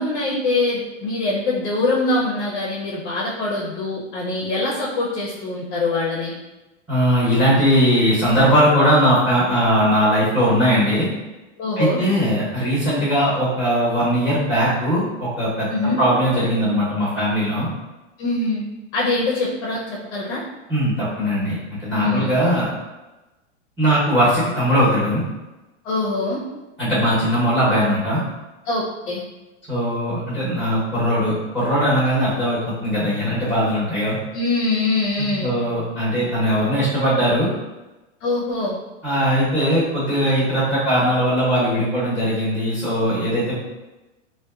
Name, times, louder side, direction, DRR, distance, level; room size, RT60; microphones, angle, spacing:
voice 1, 0.0-6.3 11.6-12.0 15.7-16.0 18.2-18.6 18.9-20.4 22.0-22.3 25.8-26.4 28.7-29.2 34.3-35.5 38.2-38.8, left 2 dB, 40° left, -3 dB, 0.5 m, -23 dB
voice 2, 6.9-11.1 11.8-17.7 20.7-22.7 23.8-25.2 26.8-28.2 29.7-34.2 35.2-37.5 39.0-43.5, equal, ahead, -11 dB, 0.8 m, -19 dB
2.7 x 2.2 x 2.3 m, 1.1 s
hypercardioid pair, 125°, 38 cm